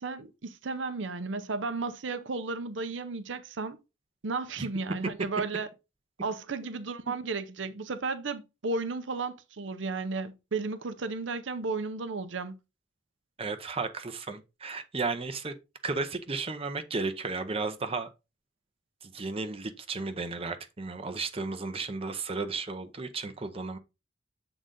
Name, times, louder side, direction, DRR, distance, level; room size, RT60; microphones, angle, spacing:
voice 1, 0.0-3.8 4.2-5.7 6.2-12.6, right 3 dB, 75° right, 0.7 m, -34 dB
voice 2, 13.4-15.5 15.8-18.1 19.0-23.8, right 3 dB, 30° right, 0.7 m, -34 dB
7.7 x 3.9 x 3.8 m
head